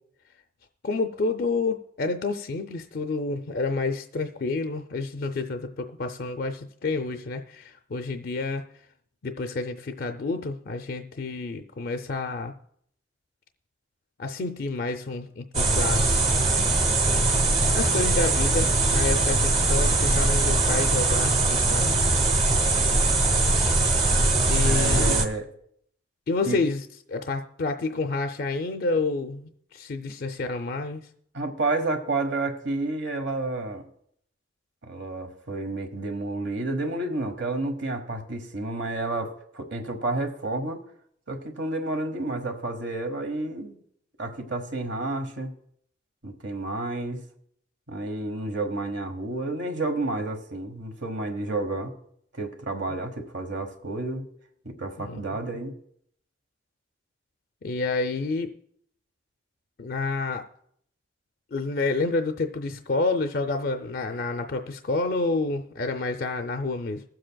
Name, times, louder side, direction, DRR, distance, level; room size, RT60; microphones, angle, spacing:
voice 1, 0.8-8.6 9.2-12.5 14.2-16.3 17.7-22.0 24.5-25.2 26.3-26.8 27.1-31.1 52.9-53.0 55.0-55.2 57.6-58.5 59.8-60.4 61.5-67.0, left 3 dB, 55° left, 5 dB, 0.5 m, -29 dB
sound 1, 15.5-25.3, right 2 dB, 35° right, 1.0 m, -21 dB
voice 2, 24.6-25.4 26.4-26.6 31.3-33.8 34.8-40.8 41.3-43.8 44.2-45.5 46.2-47.2 47.9-51.9 52.3-54.3 54.6-55.7, right 2 dB, 75° right, 5 dB, 1.3 m, -30 dB
21.5 x 7.7 x 2.3 m, 0.68 s
head